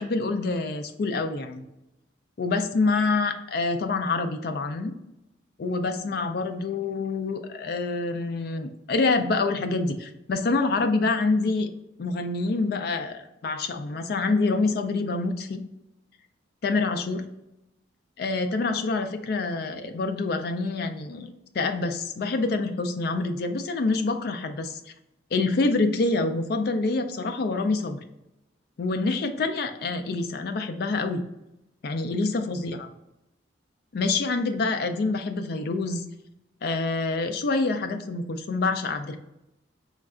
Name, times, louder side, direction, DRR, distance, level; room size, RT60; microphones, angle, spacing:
voice 1, 0.0-1.7 2.4-4.9 5.6-11.7 12.0-15.6 16.6-17.3 18.2-24.9 25.3-28.0 28.8-31.2 31.8-32.9 33.9-36.0 36.6-39.2, left 3 dB, 55° left, 7 dB, 0.4 m, -26 dB
3.2 x 2.4 x 3.6 m, 0.90 s
head